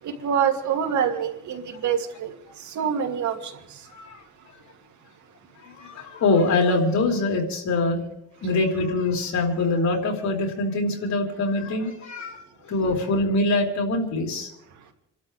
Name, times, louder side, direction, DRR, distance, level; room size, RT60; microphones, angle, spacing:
voice 1, 0.0-3.9 4.4-4.5, right 8 dB, 70° right, 2.8 m, -26 dB
voice 2, 5.6-8.0 8.4-14.5, left 2 dB, 65° left, 4.2 m, -24 dB
29.5 x 12.5 x 3.5 m
cardioid pair, 90°, 30 cm